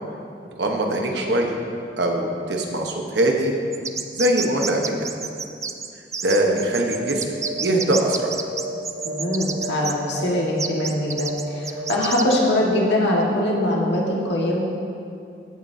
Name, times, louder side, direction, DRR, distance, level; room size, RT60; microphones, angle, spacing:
voice 1, 0.6-1.6 2.0-3.6 4.1-4.8 6.2-7.2 7.6-8.3, right 1 dB, 85° right, 1 dB, 1.1 m, -22 dB
sound 1, 3.7-9.9 10.6-12.4, right 5 dB, 15° right, 0.3 m, -29 dB
sound 2, 6.3-6.6 6.8-7.1 7.3-8.7 9.0-9.2 9.5-9.8 10.0-10.3 10.6-10.9 11.1-11.4 11.7-11.9 12.2-12.5 12.7-13.0, right 1 dB, 55° right, 2.6 m, -33 dB
voice 2, 9.0-14.6, left 1 dB, 85° left, -3 dB, 1.7 m, -22 dB
16.0 x 7.4 x 2.8 m, 2.5 s
head